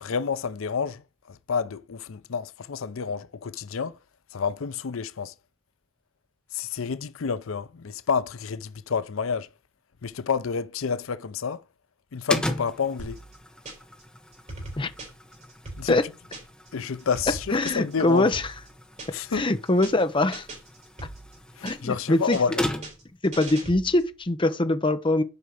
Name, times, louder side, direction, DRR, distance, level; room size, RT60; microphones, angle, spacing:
voice 1, 0.0-4.0 4.3-5.3 6.5-9.5 10.0-11.6 12.1-13.2 15.8-16.1 16.7-18.3 19.1-19.5 21.6-22.6, left 6 dB, 85° left, 0.6 m, -29 dB
sound 1, 12.3-23.2, left 1 dB, 5° left, 1.3 m, -37 dB
sound 2, 13.0-14.0 14.3-16.7 17.0-19.4 19.7-20.0 20.3-22.0 22.3-24.1, right 2 dB, 35° right, 4.7 m, -41 dB
voice 2, 17.5-18.4 19.3-20.5 21.6-22.4 23.2-25.2, left 2 dB, 25° left, 0.8 m, -23 dB
7.9 x 5.4 x 6.5 m
head